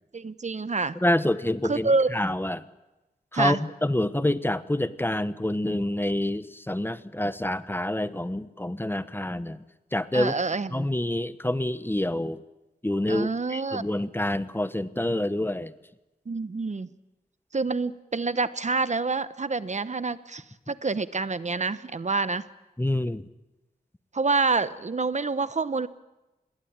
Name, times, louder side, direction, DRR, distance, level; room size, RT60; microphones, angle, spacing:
voice 1, 0.1-0.9 1.6-2.1 3.3-3.6 10.1-10.9 13.1-13.8 16.3-16.9 17.5-22.4 24.1-25.9, right 4 dB, 45° right, 14 dB, 1.0 m, -27 dB
voice 2, 1.0-2.6 3.3-9.6 9.9-10.3 10.7-12.4 12.8-15.7 22.8-23.2, left 1 dB, 15° left, 14 dB, 1.0 m, -27 dB
27.0 x 21.0 x 8.8 m, 1.0 s
wide cardioid pair, 80°, 16 cm